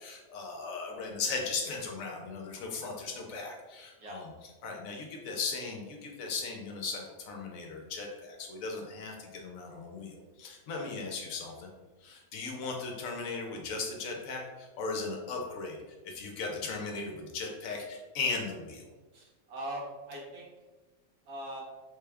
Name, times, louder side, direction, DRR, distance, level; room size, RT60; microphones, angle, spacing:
voice 1, 0.0-4.3 4.6-11.7 12.0-15.8 16.0-18.8, left 4 dB, 70° left, 1 dB, 1.0 m, -37 dB
voice 2, 19.1-20.5 21.3-21.6, right 1 dB, 80° right, -2 dB, 1.4 m, -41 dB
3.6 x 2.2 x 3.3 m, 1.2 s
omnidirectional pair, 1.6 m